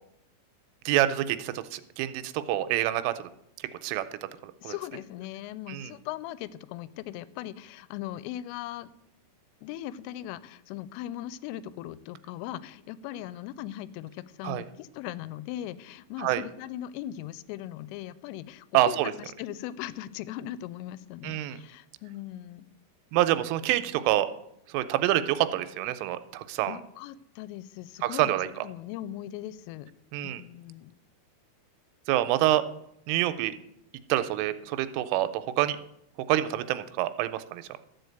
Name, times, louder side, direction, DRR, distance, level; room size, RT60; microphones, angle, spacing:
voice 1, 0.9-3.3 3.8-4.0 4.4-4.7 5.7-6.0 14.4-14.6 16.2-16.4 18.7-19.1 21.2-21.6 23.1-24.3 24.7-26.8 28.0-28.5 30.1-30.4 32.1-32.6 33.1-33.5 34.1-35.8 36.3-37.7, right 14 dB, 85° right, 11 dB, 3.1 m, -26 dB
voice 2, 4.6-8.9 9.6-22.7 26.7-28.3 28.6-29.9 30.2-30.9, left 13 dB, 90° left, 17 dB, 3.1 m, -39 dB
13.0 x 5.1 x 7.8 m, 0.80 s
omnidirectional pair, 5.7 m